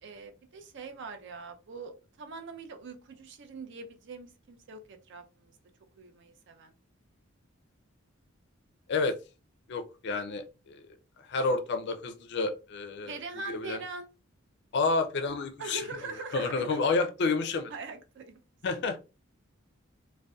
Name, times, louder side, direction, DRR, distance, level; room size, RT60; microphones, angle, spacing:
voice 1, 0.0-5.5 6.0-6.7 13.1-14.1 15.6-16.8 17.7-18.4, right 3 dB, 60° right, 0.5 m, -42 dB
voice 2, 9.7-10.8 11.3-13.2 13.5-13.8 14.7-15.8 16.3-17.7 18.6-19.0, left 3 dB, 55° left, 0.4 m, -29 dB
2.6 x 2.1 x 2.3 m
head